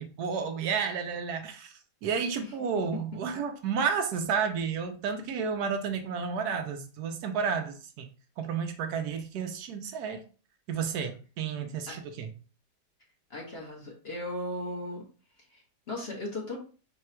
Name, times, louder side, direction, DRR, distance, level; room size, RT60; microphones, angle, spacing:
voice 1, 0.0-1.7 2.0-8.1 8.4-10.2 10.7-12.3, right 6 dB, 75° right, 6 dB, 1.1 m, -31 dB
voice 2, 13.3-15.0 15.5-16.6, left 1 dB, 45° left, -2 dB, 1.2 m, -37 dB
4.1 x 2.3 x 4.3 m, 0.37 s
omnidirectional pair, 1.8 m